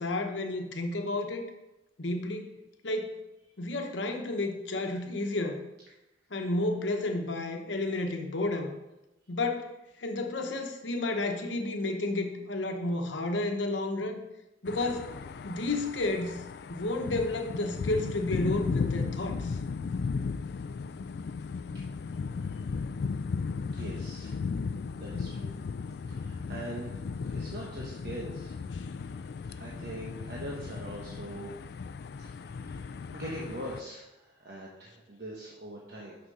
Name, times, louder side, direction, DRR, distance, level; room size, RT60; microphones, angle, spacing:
voice 1, 0.0-1.5 2.0-2.5 2.8-3.2 3.6-5.6 6.3-8.7 9.3-14.2 14.6-15.1 15.4-19.6 28.7-28.9, left 2 dB, 85° left, 4 dB, 1.0 m, -31 dB
sound 1, 14.7-33.8, left 4 dB, 60° left, 0.4 m, -36 dB
voice 2, 23.7-24.3 25.0-25.5 26.1-27.0 27.3-28.6 29.1-29.2 29.5-31.5 32.2-36.2, right 1 dB, 60° right, -4 dB, 1.2 m, -42 dB
6.3 x 5.9 x 5.5 m, 0.98 s
head